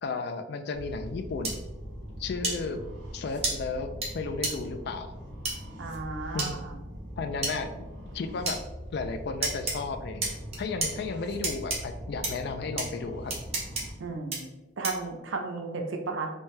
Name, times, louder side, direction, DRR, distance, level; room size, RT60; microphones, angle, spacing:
voice 1, 0.0-1.6 2.2-2.8 3.1-5.1 6.3-6.6 7.2-7.9 8.1-8.6 8.9-13.3, left 4 dB, 55° left, 8 dB, 0.3 m, -34 dB
sound 1, 0.7-13.9, equal, 60° right, 1.0 m, -42 dB
sound 2, 1.4-1.5 2.4-2.6 3.4-3.5 4.0-4.1 4.4-4.5 5.4-5.5 6.4-6.5 7.4-7.5 8.5-8.6 9.4-9.7 10.2-10.9 11.4-11.8 12.2-12.3 12.8-12.9 13.3-13.8 14.3-14.4 14.8-15.1, right 3 dB, 35° right, 0.8 m, -29 dB
voice 2, 5.8-6.7 14.0-14.5 14.8-16.3, right 3 dB, 80° right, 3 dB, 0.5 m, -34 dB
3.3 x 2.7 x 3.1 m, 1.1 s
head